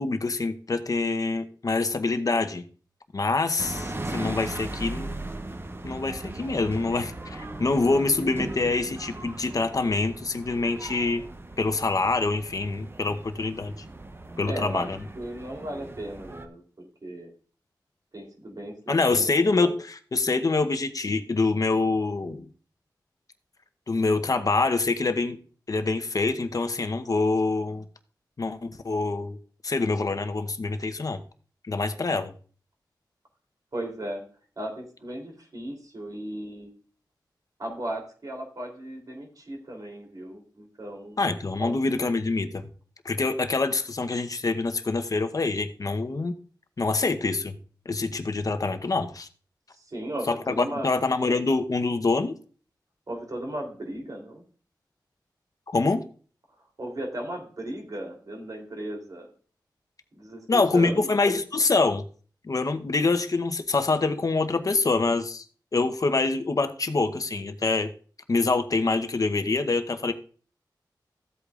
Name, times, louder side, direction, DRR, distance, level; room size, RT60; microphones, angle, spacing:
voice 1, 0.0-2.6 3.1-5.2 5.8-11.2 11.6-13.7 14.4-15.0 18.9-22.5 23.9-25.4 25.7-27.8 28.4-29.4 29.6-31.2 31.7-32.3 41.2-42.7 43.0-46.3 46.8-47.5 47.9-49.3 50.3-52.3 55.7-56.0 60.5-62.0 62.4-65.4 65.7-67.9 68.3-70.1, left 3 dB, 50° left, 8 dB, 0.9 m, -25 dB
sound 1, 3.6-16.5, right 2 dB, 30° right, 0.8 m, -38 dB
voice 2, 14.5-14.9 15.1-17.3 18.1-19.3 33.7-34.2 34.6-36.7 37.6-41.2 41.6-41.8 49.7-50.9 53.1-54.4 56.8-59.3 60.1-61.2, right 1 dB, 55° right, 2 dB, 3.3 m, -36 dB
14.5 x 8.2 x 2.5 m, 0.41 s
wide cardioid pair, 75°, 8 cm